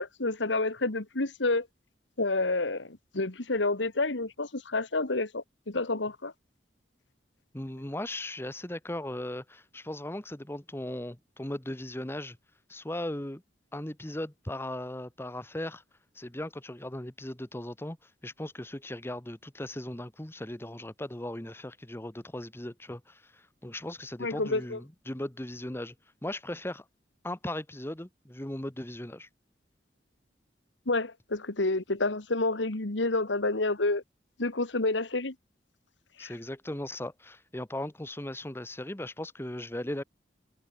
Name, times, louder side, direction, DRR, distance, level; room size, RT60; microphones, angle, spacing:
voice 1, 0.0-1.7 2.2-6.3 24.2-24.8 30.9-34.0 34.4-35.3 36.2-36.3, left 2 dB, 90° left, 1.9 m, -29 dB
voice 2, 7.5-12.4 12.7-13.4 13.7-15.8 16.1-25.9 26.2-26.8 27.2-29.3 36.2-40.0, left 1 dB, 15° left, 1.2 m, -38 dB
head